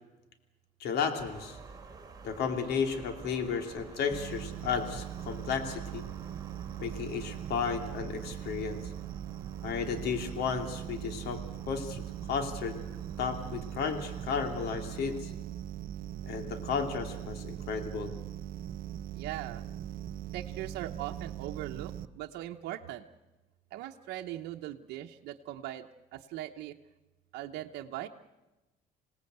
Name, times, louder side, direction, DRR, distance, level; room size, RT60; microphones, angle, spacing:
voice 1, 0.8-1.6 2.2-6.0 6.8-8.8 9.6-12.0 12.3-12.7 13.2-15.3 16.2-18.1, left 6 dB, 75° left, 6 dB, 2.8 m, -33 dB
sound 1, 1.2-15.2, right 4 dB, 20° right, 3.4 m, -51 dB
sound 2, 4.1-22.1, right 11 dB, 55° right, 0.9 m, -40 dB
voice 2, 19.1-19.6 20.3-23.1 23.7-26.7 27.3-28.1, right 13 dB, 85° right, 2 dB, 1.0 m, -40 dB
27.5 x 18.0 x 8.1 m, 1.1 s
cardioid pair, 110°, 17 cm